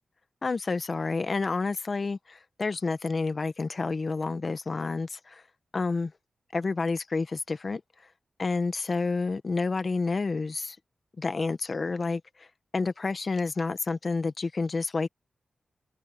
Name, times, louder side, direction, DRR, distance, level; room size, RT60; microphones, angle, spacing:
voice 1, 0.4-5.4 5.7-6.1 6.5-7.8 8.4-10.8 11.2-12.2 12.7-15.1, left 3 dB, 50° left, 1.4 m, -29 dB
cardioid pair, 65°, 0 cm